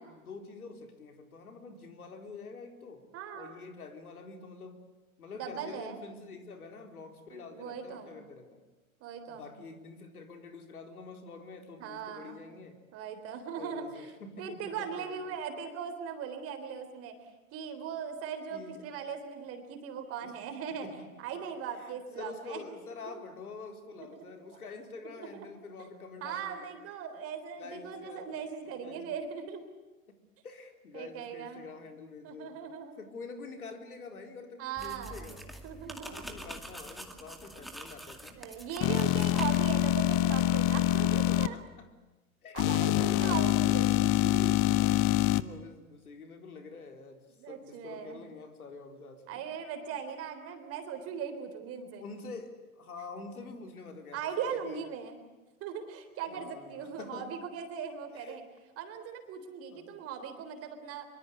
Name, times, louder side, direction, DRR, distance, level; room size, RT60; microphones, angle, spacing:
voice 1, 0.0-3.0 3.3-4.8 5.2-8.6 9.3-12.8 13.6-15.4 18.5-18.9 20.2-20.3 20.7-21.1 21.3-21.4 21.7-26.8 27.6-29.0 30.1-30.2 30.4-32.6 33.0-35.5 35.8-38.4 41.1-41.9 42.4-43.9 44.7-47.2 47.5-49.4 52.0-54.8 56.3-57.3 58.1-58.4 59.7-59.9, left 4 dB, 85° left, 6 dB, 4.3 m, -47 dB
voice 2, 3.1-3.5 5.3-6.0 7.3-8.1 9.0-9.5 11.8-12.4 12.9-14.1 14.4-17.1 17.5-20.9 21.2-22.6 23.1-23.2 24.0-24.3 25.2-25.5 25.8-25.9 26.2-29.6 30.9-31.7 32.2-32.9 34.6-35.3 35.6-36.2 38.4-41.6 42.5-44.6 47.3-48.2 49.3-52.0 54.1-55.2 55.6-58.4 58.8-61.1, right 7 dB, 30° right, 7 dB, 3.7 m, -39 dB
sound 1, 34.8-39.9, right 1 dB, ahead, 2.2 m, -45 dB
sound 2, 38.8-41.5 42.6-45.4, left 15 dB, 30° left, 0.8 m, -25 dB
24.5 x 24.0 x 8.3 m, 1.2 s
hypercardioid pair, 125°, 43 cm